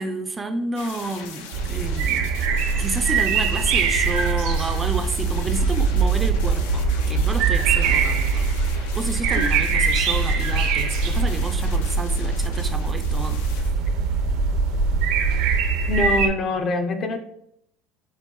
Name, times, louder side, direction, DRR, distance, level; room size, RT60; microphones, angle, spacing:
voice 1, 0.0-2.3 2.8-8.5 8.9-13.4, right 2 dB, 20° right, 7 dB, 0.4 m, -30 dB
sound 1, 0.8-13.7, left 5 dB, 90° left, 0.6 m, -40 dB
sound 2, 1.5-16.3, right 5 dB, 75° right, 0.6 m, -22 dB
voice 2, 15.9-17.2, left 2 dB, 40° left, 7 dB, 0.5 m, -24 dB
5.5 x 2.2 x 3.0 m, 0.73 s
supercardioid pair, 120°, 0 cm